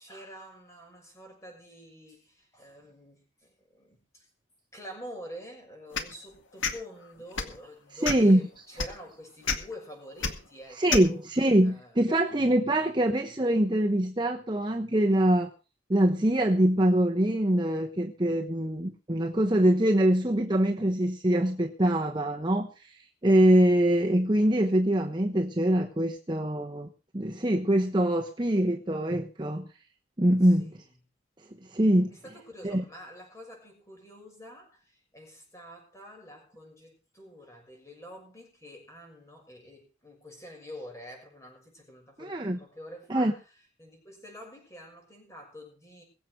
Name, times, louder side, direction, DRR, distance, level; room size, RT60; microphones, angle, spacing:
voice 1, 0.0-4.3 4.7-11.2 11.6-12.4 30.4-30.9 32.1-43.4 43.8-46.0, equal, 15° left, 6.2 m, -47 dB
sound 1, 5.9-6.1 6.6-6.8 7.3-7.6 8.0-8.3 8.8-8.9 9.4-9.6 10.2-10.3 10.9-11.1, left 5 dB, 85° left, 2.0 m, -28 dB
voice 2, 8.0-8.4 10.8-15.5 15.9-22.9 23.2-29.6 30.2-30.7 31.7-32.1 32.6-32.8 42.2-42.6 43.1-43.3, right 1 dB, 25° right, 1.0 m, -24 dB
22.5 x 7.7 x 4.6 m
head